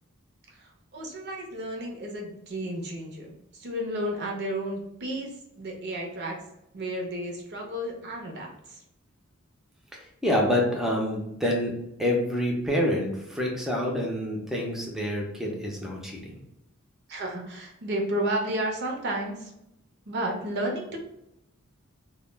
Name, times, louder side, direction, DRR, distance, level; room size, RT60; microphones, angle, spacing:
voice 1, 0.5-6.4 6.7-8.8 17.1-19.5 20.1-21.0, right 1 dB, 55° right, 1 dB, 0.6 m, -32 dB
voice 2, 10.2-16.4, left 1 dB, ahead, -1 dB, 0.5 m, -27 dB
2.2 x 2.1 x 3.2 m, 0.84 s
head